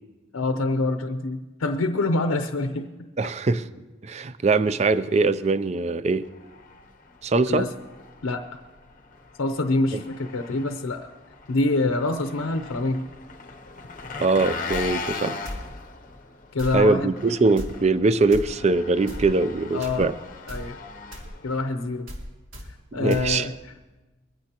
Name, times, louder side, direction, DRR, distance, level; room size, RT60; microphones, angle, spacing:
voice 1, 0.3-2.9 7.5-7.7 8.2-8.4 9.4-11.1 11.5-13.1 16.5-17.1 19.7-20.1 20.5-20.8 21.4-22.1 22.9-23.5, left 2 dB, 85° left, 6 dB, 0.7 m, -25 dB
voice 2, 3.2-3.7 4.0-6.3 7.2-7.7 9.9-10.0 14.2-15.4 16.7-20.1 22.9-23.5, right 3 dB, 30° right, 14 dB, 0.4 m, -22 dB
Engine, 6.2-22.0, left 4 dB, 40° left, 0.7 m, -39 dB
sound 1, 14.7-14.9 15.4-15.7 16.6-16.8 17.6-17.7 18.3-18.4 19.1-19.3 19.8-20.0 20.5-20.7 21.1-21.3 22.1-22.2 22.5-22.7 23.1-23.3, equal, 70° right, 3.2 m, -35 dB
22.5 x 16.0 x 2.9 m, 1.2 s
head